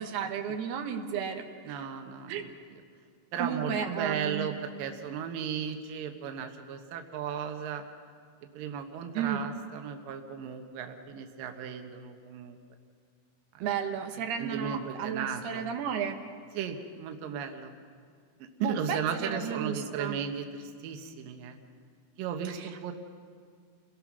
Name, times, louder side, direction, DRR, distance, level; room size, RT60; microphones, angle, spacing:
voice 1, 0.0-1.9 2.3-2.4 3.4-4.5 9.1-9.4 13.6-16.2 18.6-20.2 22.4-22.7, right 8 dB, 90° right, 4 dB, 3.3 m, -33 dB
voice 2, 1.7-2.5 3.3-7.8 8.5-12.6 13.5-13.7 14.4-15.7 16.5-17.7 18.6-21.6 22.2-22.9, right 7 dB, 70° right, 5 dB, 2.8 m, -35 dB
29.0 x 19.5 x 6.1 m, 2.2 s
omnidirectional pair, 4.4 m